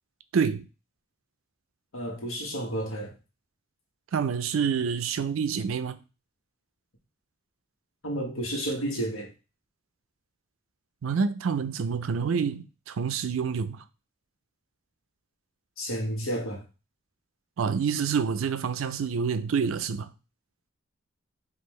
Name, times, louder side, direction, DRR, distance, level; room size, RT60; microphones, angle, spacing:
voice 1, 0.3-0.7 4.1-6.0 11.0-13.8 17.6-20.1, right 6 dB, 75° right, 0.4 m, -27 dB
voice 2, 1.9-3.1 8.0-9.3 15.8-16.6, right 1 dB, 80° left, 1.2 m, -31 dB
5.2 x 2.5 x 3.1 m
head